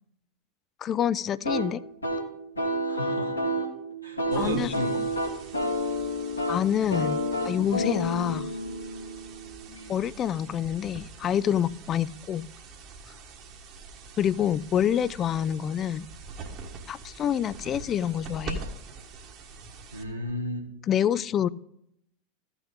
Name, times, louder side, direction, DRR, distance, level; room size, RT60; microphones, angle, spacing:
voice 1, 0.8-1.8 4.4-4.7 6.5-7.2 7.4-8.5 9.9-12.5 14.2-16.1 16.9-18.6 20.9-21.5, left 9 dB, 30° left, 20 dB, 0.3 m, -27 dB
sound 1, 1.4-10.0, equal, 85° left, 1.7 m, -30 dB
voice 2, 2.9-3.4 4.0-5.0 19.9-20.6, equal, 90° right, 0 dB, 1.3 m, -31 dB
sound 2, 4.3-20.3, right 3 dB, 40° right, 1.5 m, -44 dB
14.5 x 6.0 x 3.8 m, 0.76 s
figure-of-eight pair, 80°, 0 cm